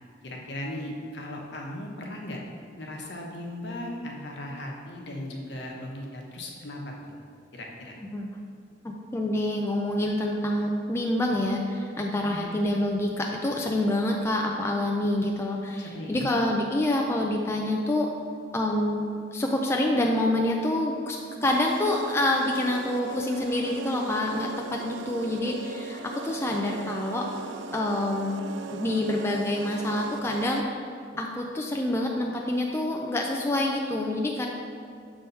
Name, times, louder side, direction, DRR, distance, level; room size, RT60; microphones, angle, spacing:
voice 1, 0.2-2.4 2.8-7.1 7.5-7.9 12.1-12.6 15.8-16.3, left 1 dB, 65° left, -1 dB, 1.0 m, -37 dB
voice 2, 8.8-18.1 18.5-27.3 27.7-28.4 28.7-30.8 31.1-34.5, left 1 dB, 15° left, 0 dB, 0.3 m, -27 dB
sound 1, 21.4-30.6, right 5 dB, 70° right, 0.3 m, -39 dB
6.8 x 3.4 x 5.3 m, 2.3 s
head